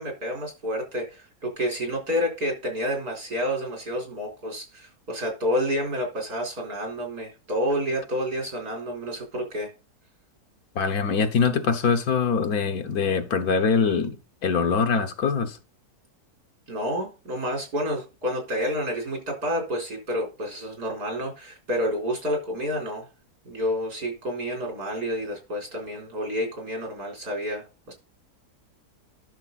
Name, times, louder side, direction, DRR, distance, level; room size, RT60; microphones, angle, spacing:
voice 1, 0.0-9.7 16.7-23.1 23.5-27.9, equal, 75° right, 4.6 m, -29 dB
voice 2, 10.7-14.1 14.4-15.6, left 5 dB, 70° left, 1.5 m, -23 dB
11.0 x 6.5 x 4.1 m
omnidirectional pair, 1.6 m